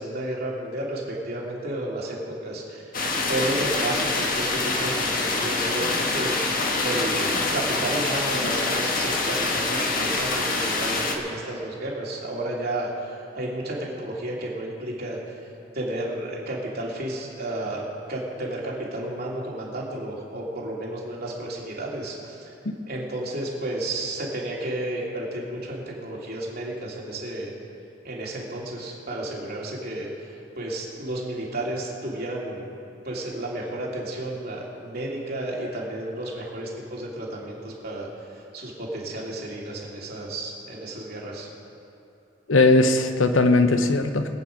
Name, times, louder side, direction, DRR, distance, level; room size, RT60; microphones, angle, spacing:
voice 1, 0.0-15.4 15.7-22.5 22.9-27.5 28.0-32.7 33.0-41.5, right 1 dB, 50° right, -4 dB, 2.8 m, -32 dB
sound 1, 2.9-11.1, left 3 dB, 45° left, 1.4 m, -25 dB
voice 2, 42.5-44.3, left 2 dB, 75° left, 8 dB, 0.9 m, -19 dB
21.5 x 8.9 x 5.3 m, 2.7 s
head